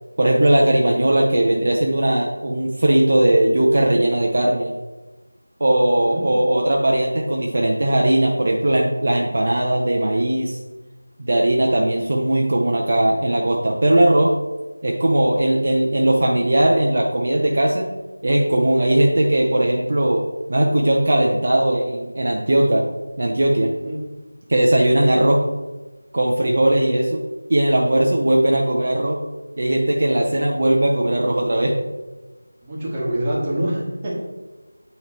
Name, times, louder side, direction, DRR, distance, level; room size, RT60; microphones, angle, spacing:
voice 1, 0.2-4.7 5.6-10.6 11.2-14.3 14.8-17.9 18.2-20.2 20.5-22.8 23.2-23.7 24.5-25.4 26.1-27.2 27.5-29.2 29.6-31.8, right 1 dB, 45° right, -1 dB, 0.7 m, -18 dB
voice 2, 5.9-6.3 23.8-24.0 32.6-34.2, right 1 dB, 15° right, -6 dB, 1.4 m, -25 dB
8.5 x 3.1 x 4.4 m, 1.2 s
figure-of-eight pair, 170°, 0 cm